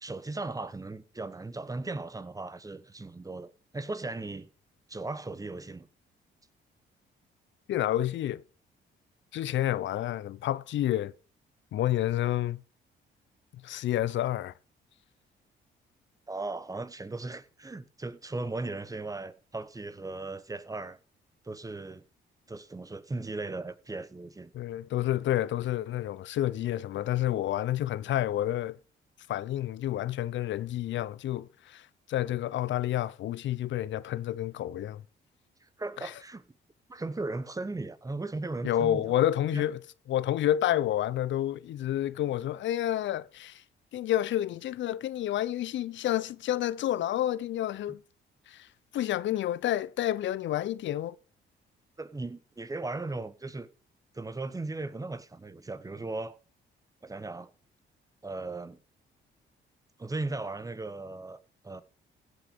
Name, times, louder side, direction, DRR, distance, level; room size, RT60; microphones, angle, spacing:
voice 1, 0.0-4.5 4.9-5.9 16.3-21.0 21.4-22.0 22.5-24.5 35.6-36.4 36.9-39.1 39.5-39.6 52.0-53.7 54.1-56.4 57.0-57.5 58.2-58.8 60.0-61.8, right 2 dB, 15° right, 1.0 m, -37 dB
voice 2, 7.7-8.4 9.3-11.1 11.7-12.6 13.6-14.5 24.5-28.8 29.3-35.0 36.0-36.1 38.6-39.8 40.1-43.6 43.9-48.0 48.5-48.7 48.9-51.2, left 12 dB, 70° left, 0.6 m, -29 dB
16.0 x 6.4 x 5.2 m
cardioid pair, 90°, 20 cm